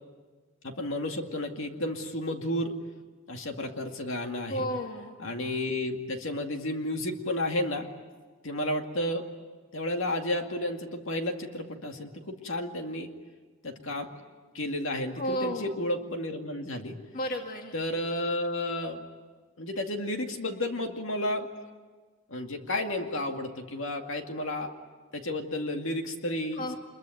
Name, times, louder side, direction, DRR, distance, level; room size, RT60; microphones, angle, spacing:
voice 1, 0.6-2.7 3.3-4.7 5.2-7.9 8.4-9.2 9.7-13.1 13.6-14.1 14.5-17.0 17.7-19.0 19.6-21.5 22.3-24.7 25.1-26.8, left 1 dB, 60° left, 4 dB, 2.3 m, -32 dB
voice 2, 4.5-5.1 15.2-15.7 17.1-17.7 26.6-26.8, equal, 40° left, 3 dB, 1.7 m, -32 dB
26.0 x 22.0 x 9.3 m, 1.4 s
head